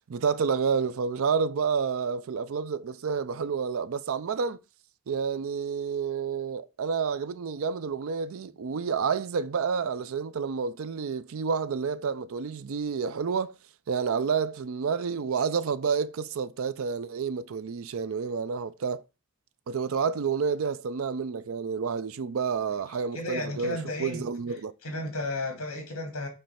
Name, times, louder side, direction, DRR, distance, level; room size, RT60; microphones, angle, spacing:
voice 1, 0.1-4.6 5.1-13.5 13.9-19.0 19.7-24.7, right 6 dB, 65° right, 0.4 m, -29 dB
voice 2, 22.9-26.3, left 1 dB, 70° left, 2.0 m, -34 dB
5.4 x 3.3 x 5.6 m
head